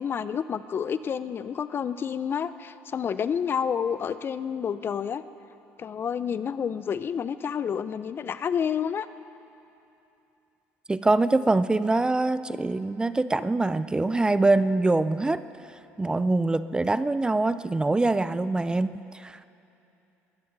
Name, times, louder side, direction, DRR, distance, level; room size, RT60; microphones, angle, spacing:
voice 1, 0.0-5.2 5.8-9.1, left 7 dB, 40° left, 14 dB, 0.5 m, -29 dB
voice 2, 10.9-15.4 16.0-19.4, right 2 dB, 15° right, 14 dB, 0.4 m, -24 dB
21.5 x 16.0 x 4.0 m, 2.8 s
supercardioid pair, 85°, 6 cm